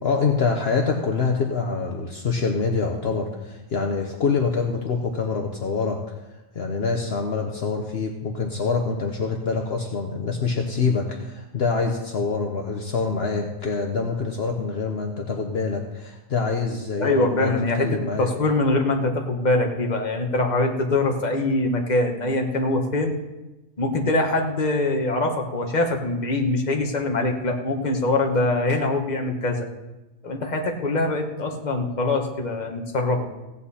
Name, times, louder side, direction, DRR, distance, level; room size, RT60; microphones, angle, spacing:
voice 1, 0.0-6.0 6.5-18.3, left 4 dB, 60° left, 2 dB, 1.2 m, -25 dB
voice 2, 17.0-23.1 23.8-29.7 30.2-33.2, left 2 dB, 40° left, 3 dB, 1.4 m, -23 dB
16.0 x 9.0 x 4.2 m, 1.0 s
omnidirectional pair, 1.2 m